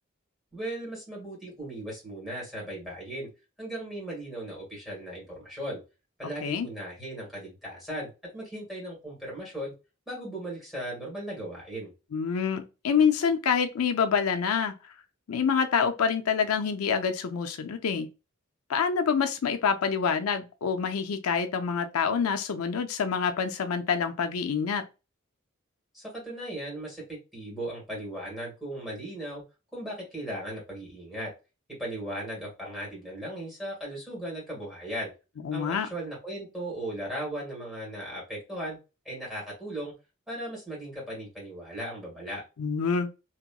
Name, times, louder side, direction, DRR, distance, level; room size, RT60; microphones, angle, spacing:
voice 1, 0.5-3.3 3.6-5.8 6.2-9.7 10.1-11.9 25.9-29.4 29.7-31.3 31.8-35.1 35.5-38.8 39.0-39.9 40.3-42.4, right 1 dB, ahead, 1.6 m, -37 dB
voice 2, 12.1-14.7 15.3-18.1 18.7-24.8 35.4-35.9 42.6-43.1, left 6 dB, 90° left, 0.4 m, -26 dB
2.9 x 2.9 x 2.2 m
head